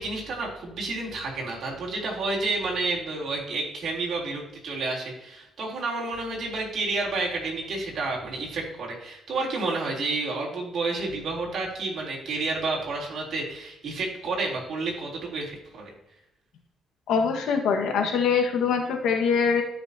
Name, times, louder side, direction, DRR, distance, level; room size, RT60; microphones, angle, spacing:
voice 1, 0.0-15.9, right 3 dB, 60° right, -3 dB, 3.5 m, -30 dB
voice 2, 17.1-19.6, left 6 dB, 80° left, 2 dB, 1.6 m, -23 dB
13.5 x 6.1 x 2.9 m, 0.90 s
cardioid pair, 90°, 0 cm